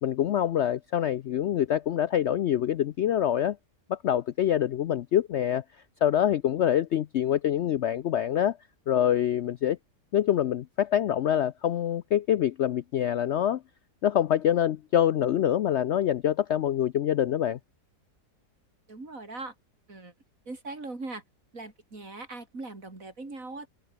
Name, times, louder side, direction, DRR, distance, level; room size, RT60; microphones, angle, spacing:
voice 1, 0.0-3.6 3.9-5.6 6.0-8.6 8.9-9.8 10.1-13.6 14.0-17.6, left 10 dB, 80° left, 0.6 m, -25 dB
voice 2, 18.9-19.5 19.9-20.1 20.5-21.2 21.5-23.7, right 3 dB, 50° right, 5.0 m, -40 dB
omnidirectional pair, 1.8 m